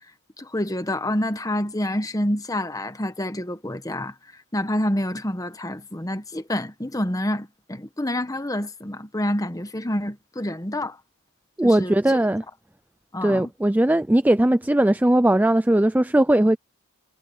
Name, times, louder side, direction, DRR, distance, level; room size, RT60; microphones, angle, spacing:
voice 1, 0.4-4.1 4.5-11.0 11.6-12.2 13.1-13.5, left 1 dB, 15° left, 1.1 m, -27 dB
voice 2, 11.6-12.4 13.2-16.6, right 1 dB, 10° right, 0.4 m, -19 dB
head